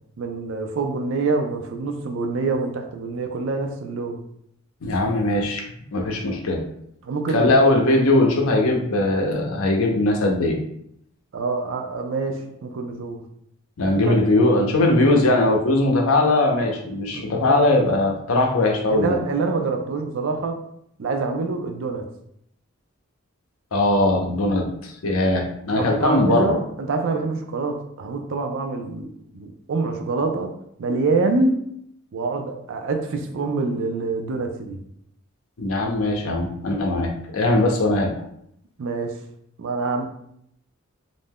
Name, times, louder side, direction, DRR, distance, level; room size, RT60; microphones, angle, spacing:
voice 1, 0.2-4.2 7.0-7.5 11.3-13.2 14.0-14.1 17.1-17.6 18.9-20.6 21.0-22.1 25.7-30.5 30.8-31.6 32.1-34.8 38.8-39.2 39.6-40.1, right 3 dB, 65° right, 4 dB, 0.4 m, -26 dB
voice 2, 4.8-5.6 5.9-6.6 7.3-10.6 13.8-19.2 23.7-26.6 35.6-38.1, left 2 dB, 85° left, 2 dB, 0.6 m, -20 dB
2.5 x 2.2 x 3.4 m, 0.72 s
head